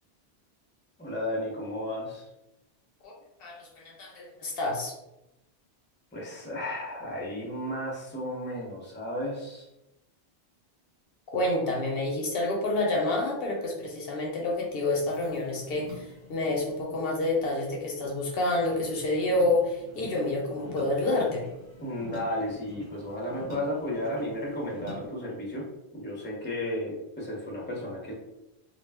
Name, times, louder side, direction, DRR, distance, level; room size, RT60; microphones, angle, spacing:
voice 1, 1.0-2.3 6.1-9.7 21.8-25.7 25.9-28.1, left 1 dB, 10° left, -3 dB, 0.6 m, -33 dB
voice 2, 3.4-4.9 11.3-21.5, left 2 dB, 70° left, -1 dB, 0.8 m, -28 dB
sound 1, 14.5-25.1, left 1 dB, 70° right, 1.2 m, -48 dB
2.3 x 2.1 x 3.3 m, 0.89 s
omnidirectional pair, 1.1 m